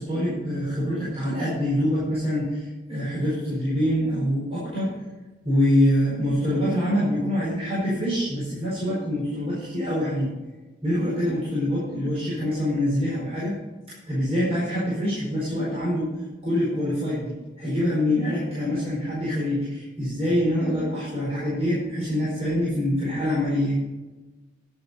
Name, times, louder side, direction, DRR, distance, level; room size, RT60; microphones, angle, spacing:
voice 1, 0.0-4.9 5.4-10.3 10.8-13.6 13.9-16.1 16.4-23.8, equal, 35° right, -8 dB, 4.7 m, -25 dB
11.0 x 9.3 x 5.4 m, 1.2 s
head